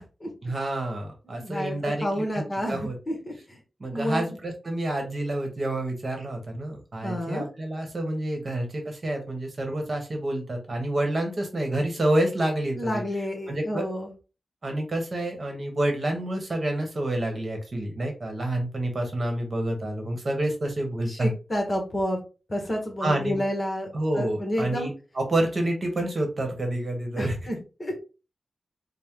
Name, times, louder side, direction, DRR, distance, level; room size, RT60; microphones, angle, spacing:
voice 1, 0.4-3.0 3.8-13.0 13.5-13.9 14.6-21.3 23.0-23.4 23.9-27.5, right 1 dB, 45° right, 3 dB, 1.1 m, -28 dB
voice 2, 1.2-3.6 3.9-4.4 7.0-7.5 12.8-14.1 21.1-22.2 22.5-23.9 24.1-24.9 27.2-27.9, equal, 25° left, 2 dB, 1.1 m, -30 dB
4.3 x 2.1 x 3.6 m, 0.32 s
wide cardioid pair, 120°, 0 cm